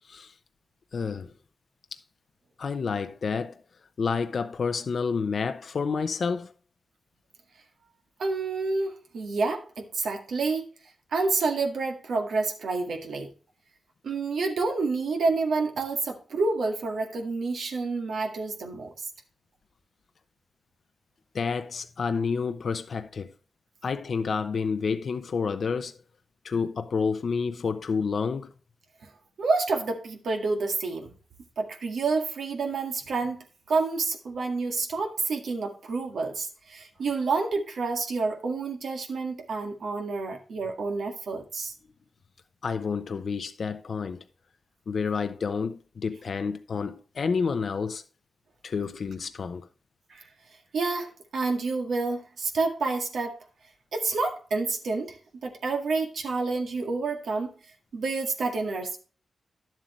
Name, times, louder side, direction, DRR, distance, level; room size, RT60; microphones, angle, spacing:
voice 1, 0.9-1.3 1.9-2.0 2.6-3.6 4.0-6.5 21.3-23.3 23.8-25.9 26.4-28.5 42.6-44.2 44.9-48.0 48.6-49.7, left 5 dB, 65° left, 0.7 m, -29 dB
voice 2, 8.2-10.6 11.1-13.3 14.0-18.9 29.0-29.1 29.4-31.2 31.6-41.7 50.1-50.3 50.7-53.4 53.9-55.2 55.4-57.5 57.9-59.0, right 3 dB, 80° right, 1.9 m, -29 dB
11.0 x 7.5 x 3.2 m
cardioid pair, 70°, 0 cm